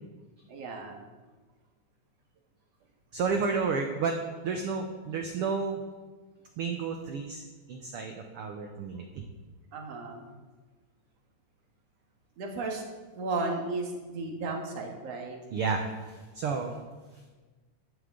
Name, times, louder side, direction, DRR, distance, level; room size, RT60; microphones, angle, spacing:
voice 1, 0.5-1.0 9.7-10.3 12.4-12.8 13.1-15.4, right 3 dB, 55° right, 1 dB, 2.6 m, -34 dB
voice 2, 3.1-5.8 6.6-7.4 7.7-9.2 15.5-15.8 16.3-16.7, right 5 dB, 80° right, 4 dB, 1.2 m, -31 dB
13.5 x 11.0 x 3.8 m, 1.3 s
omnidirectional pair, 3.6 m